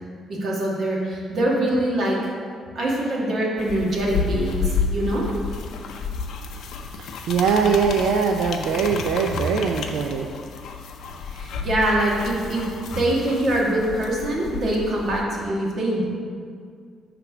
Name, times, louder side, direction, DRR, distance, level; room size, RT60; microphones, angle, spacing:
voice 1, 0.3-2.2 2.7-5.2 11.3-16.0, right 1 dB, 55° right, -3 dB, 1.5 m, -24 dB
sound 1, 3.6-15.2, left 5 dB, 75° left, 0.5 m, -31 dB
voice 2, 7.3-10.3, right 6 dB, 85° right, 2 dB, 0.4 m, -21 dB
6.0 x 3.3 x 5.9 m, 2.1 s
cardioid pair, 90°, 0 cm